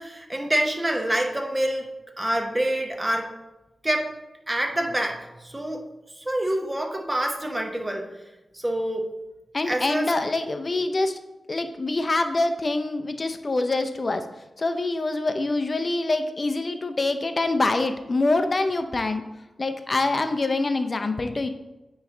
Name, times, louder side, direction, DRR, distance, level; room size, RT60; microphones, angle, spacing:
voice 1, 0.0-3.3 3.8-4.1 4.5-5.8 6.1-8.1 8.5-9.1 9.7-10.1, right 1 dB, 20° right, 3 dB, 1.0 m, -26 dB
voice 2, 9.5-11.2 11.5-14.2 14.6-19.2 19.6-21.5, left 2 dB, 40° left, 7 dB, 0.6 m, -25 dB
9.3 x 3.2 x 3.8 m, 0.99 s
cardioid pair, 70°, 0 cm